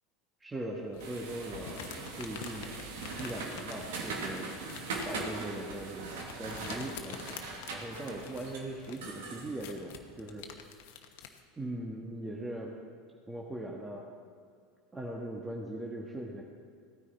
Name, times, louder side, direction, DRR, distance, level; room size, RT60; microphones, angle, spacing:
voice 1, 0.4-2.7 3.2-4.5 5.0-7.4 7.7-10.5 11.6-12.7 13.3-14.1 14.9-16.4, right 1 dB, 15° right, -2 dB, 1.5 m, -40 dB
sound 1, 0.9-11.4, left 8 dB, 70° left, 1.1 m, -48 dB
sound 2, 1.0-10.5, right 3 dB, 75° right, 2.0 m, -41 dB
17.0 x 9.8 x 4.3 m, 2.2 s
hypercardioid pair, 90°, 0 cm